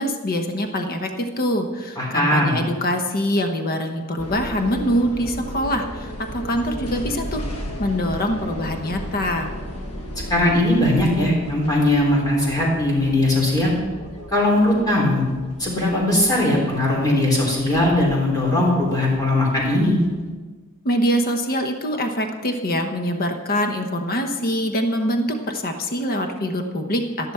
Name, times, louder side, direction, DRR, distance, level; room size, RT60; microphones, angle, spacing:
voice 1, 0.0-7.4 7.8-9.5 20.8-27.3, equal, 45° left, 5 dB, 0.9 m, -24 dB
voice 2, 2.0-2.6 10.3-13.7 14.3-15.3 15.6-20.0, left 1 dB, 15° left, -4 dB, 3.7 m, -19 dB
sound 1, 4.2-20.3, equal, 90° left, 1.4 m, -35 dB
12.0 x 10.5 x 4.4 m, 1.4 s
head